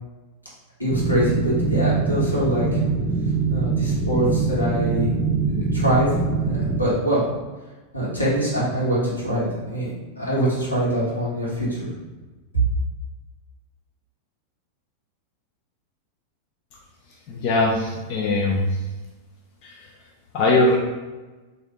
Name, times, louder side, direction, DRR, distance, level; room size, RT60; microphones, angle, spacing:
voice 1, 0.8-2.8 3.5-5.1 5.5-6.2 6.4-7.2 7.9-9.9 10.2-11.9, right 1 dB, 85° left, -8 dB, 1.3 m, -24 dB
sound 1, 0.9-6.8, right 4 dB, 25° right, 0.6 m, -23 dB
voice 2, 17.3-18.8 19.6-19.9 20.3-20.8, left 2 dB, 40° left, -2 dB, 0.5 m, -21 dB
3.6 x 2.6 x 3.3 m, 1.2 s
figure-of-eight pair, 90°, 0 cm